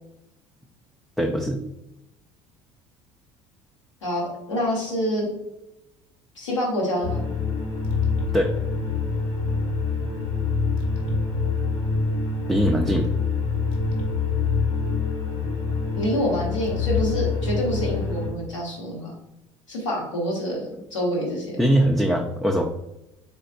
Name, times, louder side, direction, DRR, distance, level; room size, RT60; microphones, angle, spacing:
voice 1, 1.2-1.6 8.3-8.5 12.5-13.1 21.6-22.6, equal, ahead, 1 dB, 0.5 m, -21 dB
voice 2, 4.0-5.3 6.3-7.2 15.9-19.1 19.7-21.6, equal, 80° left, -3 dB, 1.4 m, -27 dB
sound 1, 7.0-18.3, left 4 dB, 55° left, 1.2 m, -25 dB
4.2 x 4.0 x 2.6 m, 0.87 s
figure-of-eight pair, 60°, 16 cm